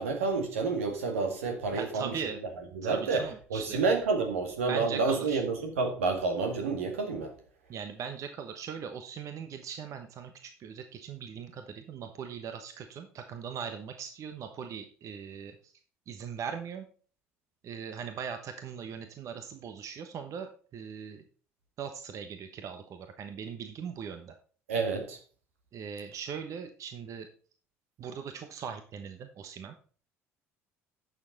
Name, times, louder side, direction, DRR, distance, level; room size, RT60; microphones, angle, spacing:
voice 1, 0.0-2.1 2.7-3.2 3.5-7.3 24.7-25.2, right 4 dB, 80° right, 4 dB, 1.9 m, -29 dB
voice 2, 1.7-2.4 2.8-3.8 4.7-5.4 7.7-15.7 16.1-16.9 17.6-21.2 21.8-24.3 25.7-27.3 28.0-29.7, right 7 dB, 50° right, 7 dB, 1.1 m, -40 dB
11.0 x 6.9 x 4.1 m, 0.42 s
figure-of-eight pair, 60°, 7 cm